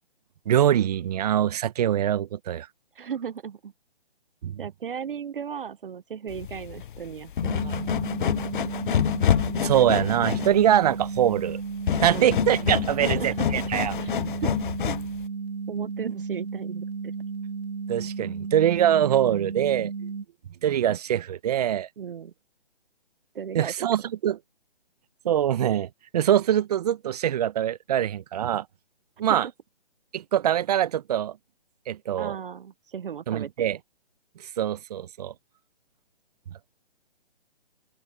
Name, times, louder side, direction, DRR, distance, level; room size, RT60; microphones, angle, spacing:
voice 1, 0.5-2.7 4.4-4.6 9.6-11.6 12.0-13.9 17.9-19.9 20.6-21.9 23.5-24.4 25.2-28.6 29.2-29.5 30.1-31.4 31.9-32.4 33.3-33.8 34.6-35.3, right 10 dB, 40° right, 1.2 m, -23 dB
voice 2, 2.9-3.7 4.6-7.8 12.1-12.3 13.0-13.6 14.0-14.1 14.4-14.5 14.8-15.0 15.7-17.1 22.0-22.3 23.3-23.7 29.3-29.4 32.2-33.7, right 7 dB, 60° right, 1.0 m, -35 dB
sound 1, 6.3-15.2, left 9 dB, 55° left, 0.5 m, -27 dB
sound 2, 7.4-20.3, right 5 dB, 80° right, 1.2 m, -34 dB
figure-of-eight pair, 145°, 30 cm